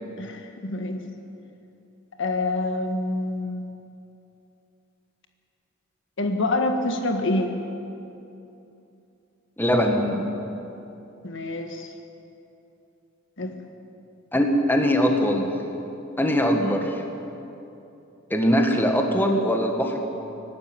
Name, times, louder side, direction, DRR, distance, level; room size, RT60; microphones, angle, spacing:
voice 1, 0.2-1.0 2.2-3.6 6.2-7.5 11.2-11.9 13.4-13.5, left 2 dB, 65° left, 5 dB, 1.6 m, -26 dB
voice 2, 9.6-10.3 14.3-15.5 16.2-17.0 18.3-20.0, equal, 10° left, 2 dB, 1.8 m, -21 dB
23.5 x 12.5 x 9.5 m, 2.9 s
head